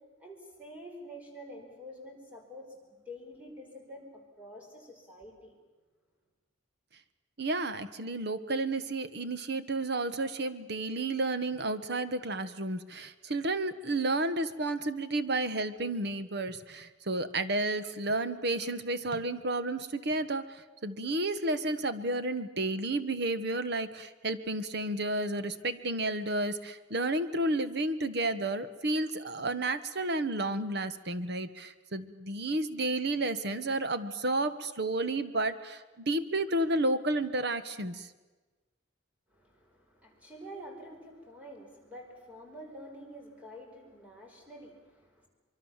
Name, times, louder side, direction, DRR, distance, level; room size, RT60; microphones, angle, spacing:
voice 1, 0.2-5.5 39.3-45.3, equal, 5° right, 0 dB, 5.2 m, -48 dB
voice 2, 7.4-38.1, right 2 dB, 55° right, 12 dB, 1.3 m, -31 dB
24.5 x 23.5 x 7.4 m, 1.2 s
head